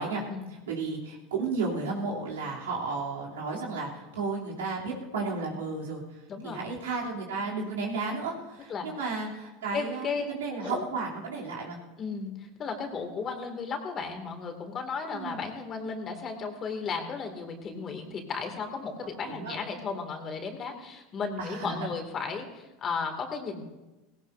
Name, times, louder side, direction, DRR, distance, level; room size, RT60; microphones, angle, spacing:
voice 1, 0.7-6.0 6.4-11.8 15.1-15.4 19.3-19.6 21.4-21.7, right 4 dB, 90° right, -4 dB, 3.1 m, -33 dB
voice 2, 6.3-6.6 8.7-8.9 9.7-10.2 10.6-10.8 12.0-23.6, left 5 dB, 35° left, 4 dB, 2.4 m, -35 dB
18.0 x 17.0 x 2.7 m, 1.0 s
hypercardioid pair, 100°, 0 cm